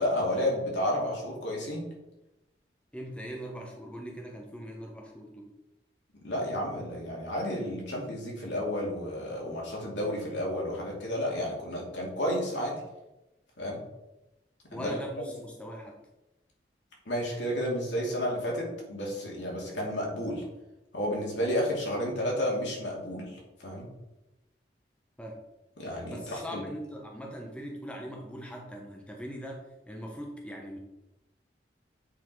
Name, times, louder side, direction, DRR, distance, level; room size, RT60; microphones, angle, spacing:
voice 1, 0.0-1.8 6.2-12.7 13.6-13.8 14.7-14.9 17.1-20.4 20.9-23.9 25.8-26.6, equal, 85° left, -2 dB, 2.5 m, -31 dB
voice 2, 2.9-5.5 14.7-16.0 25.2-25.4 26.1-30.8, equal, 5° left, 0 dB, 0.9 m, -41 dB
8.4 x 4.3 x 4.6 m, 0.96 s
head